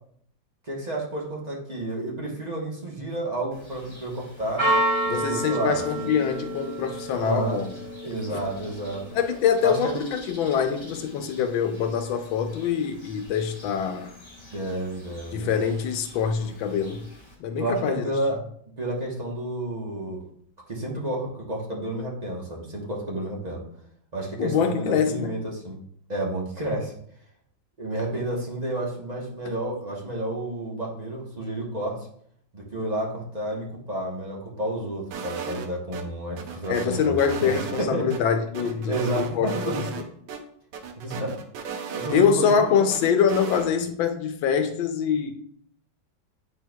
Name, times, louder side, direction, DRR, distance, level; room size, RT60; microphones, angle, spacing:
voice 1, 0.6-4.7 5.0-6.1 7.2-7.6 8.0-9.0 9.6-9.9 14.5-15.5 17.6-18.4 18.8-20.2 20.7-23.7 24.1-25.8 26.1-26.9 27.8-32.1 32.5-38.1 38.6-39.8 41.0-41.4 41.9-42.9, right 1 dB, 30° right, 0.9 m, -30 dB
Church bell, 3.5-17.3, right 1 dB, 15° left, 2.1 m, -33 dB
voice 2, 5.1-7.7 9.1-14.1 15.3-17.0 17.4-18.0 24.4-25.3 36.7-39.7 42.1-45.3, left 7 dB, 85° left, 1.4 m, -24 dB
sound 1, 35.1-36.0 36.4-38.2 38.5-40.0 40.3-40.4 40.7-42.6 42.9-43.7, right 6 dB, 75° right, 1.3 m, -35 dB
9.2 x 4.5 x 2.3 m
omnidirectional pair, 2.1 m